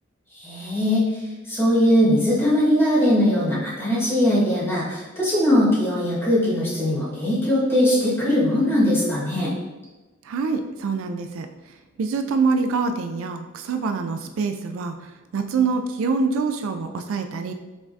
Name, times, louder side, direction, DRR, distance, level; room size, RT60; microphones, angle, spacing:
voice 1, 0.4-1.0 1.5-9.5, left 1 dB, 10° left, -8 dB, 1.5 m, -20 dB
voice 2, 10.3-11.5 12.0-17.5, right 4 dB, 75° right, 7 dB, 0.3 m, -25 dB
5.2 x 3.5 x 2.6 m, 1.2 s
head